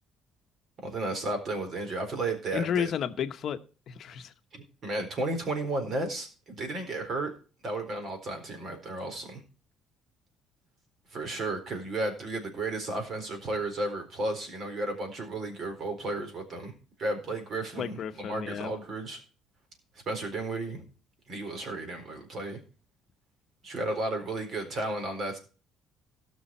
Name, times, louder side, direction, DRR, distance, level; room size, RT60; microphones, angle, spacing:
voice 1, 0.8-2.9 4.5-7.3 7.6-9.4 11.1-16.7 17.0-19.2 20.1-20.8 21.3-22.6 23.6-25.4, right 2 dB, 40° right, 5 dB, 4.2 m, -33 dB
voice 2, 2.5-3.6 3.9-4.3 17.8-18.7, left 8 dB, 45° left, 9 dB, 1.0 m, -32 dB
17.5 x 6.3 x 4.4 m, 0.36 s
cardioid pair, 155°, 0 cm